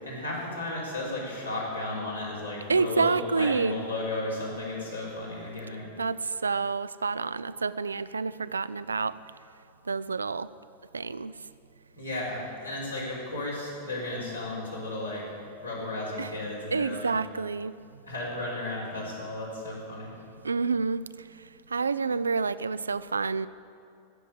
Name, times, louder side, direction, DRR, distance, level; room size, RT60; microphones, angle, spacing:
voice 1, 0.1-5.8 12.0-15.2 15.6-17.1 18.0-20.1, left 2 dB, 85° left, -5 dB, 4.2 m, -34 dB
voice 2, 2.7-3.8 6.0-9.2 9.9-10.5 10.9-11.4 16.2-16.3 16.7-18.0 20.4-23.5, right 4 dB, 75° right, 16 dB, 0.4 m, -29 dB
16.0 x 7.1 x 8.6 m, 2.5 s
figure-of-eight pair, 90°, 0 cm